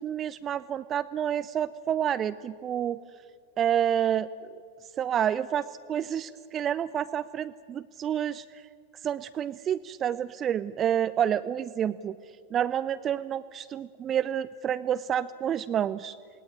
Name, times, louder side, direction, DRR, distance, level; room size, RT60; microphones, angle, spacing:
voice 1, 0.0-3.0 3.6-4.3 5.0-8.5 9.0-12.2 12.5-16.2, right 9 dB, 25° right, 14 dB, 0.6 m, -29 dB
27.5 x 20.0 x 9.5 m, 2.1 s
figure-of-eight pair, 90°, 0 cm